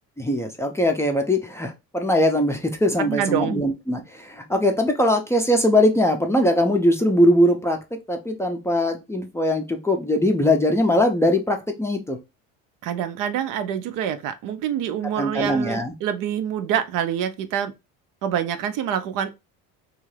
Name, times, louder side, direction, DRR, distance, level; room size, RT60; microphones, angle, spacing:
voice 1, 0.2-7.8 8.1-12.2 15.2-15.9, left 1 dB, 10° left, 0.5 m, -21 dB
voice 2, 3.0-3.7 12.8-17.7 18.2-19.3, right 9 dB, 60° right, 0.5 m, -26 dB
2.6 x 2.4 x 3.2 m
supercardioid pair, 90°, 37 cm